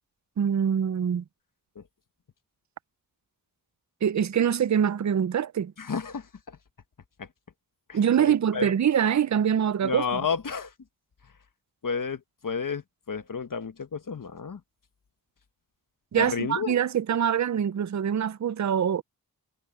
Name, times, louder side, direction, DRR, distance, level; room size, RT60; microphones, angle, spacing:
voice 1, 0.4-1.2 4.0-5.7 7.9-10.2 16.1-19.0, right 8 dB, 50° right, 0.5 m, -24 dB
voice 2, 5.8-6.3 7.2-7.3 7.9-8.7 9.8-10.7 11.8-12.8 13.1-14.6 16.2-16.7, left 5 dB, 60° left, 1.3 m, -31 dB
wide cardioid pair, 85°, 37 cm